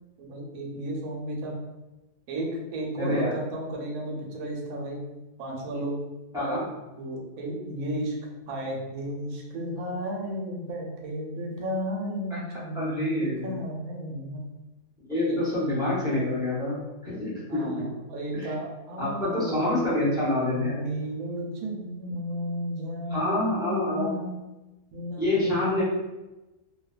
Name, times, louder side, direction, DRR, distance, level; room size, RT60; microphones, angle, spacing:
voice 1, 0.2-1.6 2.3-5.0 5.4-6.0 6.3-8.1 8.5-14.5 15.1-15.4 17.5-20.2 20.5-24.4 24.9-25.8, right 1 dB, 70° right, -1 dB, 1.0 m, -33 dB
voice 2, 3.0-3.3 6.3-6.6 12.7-13.5 15.1-17.8 18.3-18.5 19.0-20.8 23.1-24.1 25.2-25.8, left 1 dB, 5° right, -10 dB, 0.4 m, -27 dB
2.6 x 2.3 x 2.3 m, 1.0 s
omnidirectional pair, 1.7 m